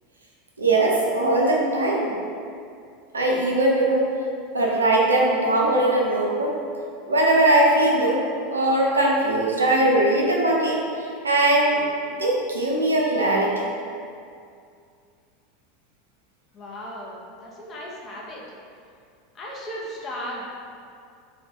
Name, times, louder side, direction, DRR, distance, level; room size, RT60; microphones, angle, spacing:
voice 1, 0.6-2.1 3.1-4.1 4.5-6.5 7.1-8.2 8.5-10.8 11.2-13.7, right 1 dB, 80° right, -2 dB, 0.3 m, -20 dB
voice 2, 16.5-18.4 19.3-20.5, equal, 30° left, -4 dB, 0.5 m, -36 dB
2.2 x 2.1 x 2.6 m, 2.4 s
figure-of-eight pair, 80°, 0 cm